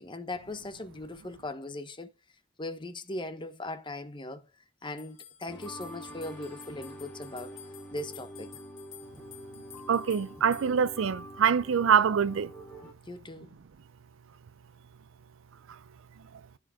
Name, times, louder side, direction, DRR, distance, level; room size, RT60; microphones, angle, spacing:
voice 1, 0.0-2.1 2.6-4.5 4.8-7.6 7.9-8.5 13.0-13.5, left 2 dB, 25° left, 1.0 m, -39 dB
sound 1, 5.0-11.0, left 11 dB, 75° left, 2.3 m, -52 dB
sound 2, 5.5-12.9, equal, 5° left, 2.3 m, -46 dB
voice 2, 9.9-12.5, right 7 dB, 80° right, 0.4 m, -24 dB
15.0 x 5.1 x 3.6 m
head